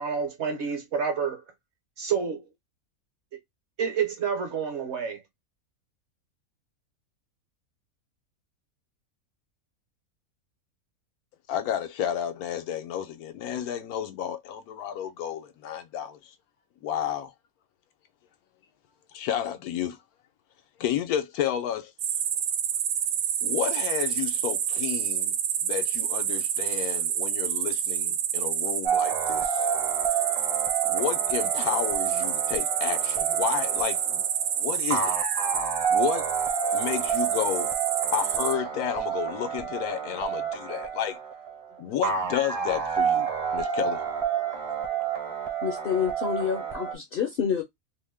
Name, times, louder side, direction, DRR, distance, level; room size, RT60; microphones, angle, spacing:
voice 1, 0.0-1.4 2.0-2.5 3.8-5.2, right 6 dB, 55° right, 1.0 m, -28 dB
voice 2, 11.5-16.2 16.8-17.3 19.1-20.0 20.8-21.9 23.4-25.3 25.6-29.6 30.8-34.2 34.6-35.1 35.9-36.3 36.7-37.7 38.1-41.2 41.8-44.0 44.9-45.0, left 9 dB, 85° left, 1.1 m, -31 dB
sound 1, 22.0-38.5, right 9 dB, 85° right, 1.1 m, -28 dB
sound 2, 28.8-46.9, right 7 dB, 30° right, 0.7 m, -30 dB
voice 3, 45.6-47.6, left 7 dB, 55° left, 0.6 m, -28 dB
2.8 x 2.1 x 3.3 m
omnidirectional pair, 1.6 m